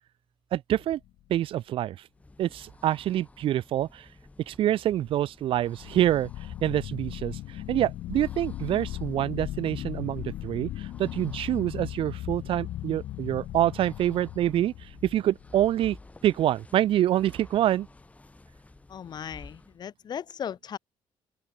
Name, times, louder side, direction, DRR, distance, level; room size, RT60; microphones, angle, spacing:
voice 1, 0.5-1.0 1.3-2.0 2.4-4.1 4.5-6.3 6.6-14.7 15.0-16.0 16.2-17.9, right 12 dB, 65° right, 0.8 m, -26 dB
sound 1, 0.8-1.3 5.7-15.9, left 14 dB, 80° left, 2.4 m, -38 dB
sound 2, 2.0-19.9, left 2 dB, 15° left, 4.7 m, -53 dB
voice 2, 18.9-20.8, left 8 dB, 45° left, 1.1 m, -37 dB
open air
cardioid pair, 125°, 10 cm